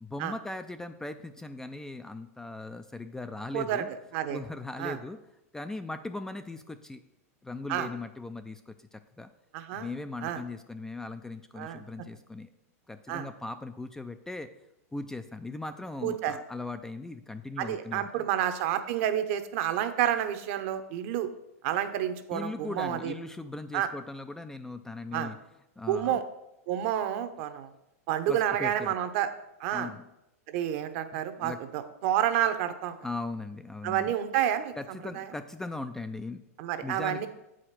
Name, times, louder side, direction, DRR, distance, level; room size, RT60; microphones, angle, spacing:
voice 1, 0.0-3.9 4.3-5.2 5.5-7.0 7.4-9.3 9.7-12.5 12.9-14.5 14.9-18.3 22.3-25.4 25.8-26.2 28.3-28.9 29.7-30.1 31.1-31.6 33.0-34.1 34.8-36.4 36.8-37.3, left 2 dB, 5° left, 8 dB, 0.4 m, -39 dB
voice 2, 3.5-3.8 4.1-4.4 4.8-5.0 7.7-7.9 9.5-9.9 10.2-10.4 11.6-11.8 13.1-13.3 16.0-16.3 17.6-21.3 21.6-23.2 23.7-23.9 25.1-25.3 25.9-26.2 26.7-27.7 28.1-29.3 29.6-29.9 30.5-33.0 33.8-35.3 36.6-37.3, right 11 dB, 50° right, 10 dB, 0.9 m, -29 dB
7.6 x 5.0 x 5.8 m, 0.88 s
hypercardioid pair, 125°, 8 cm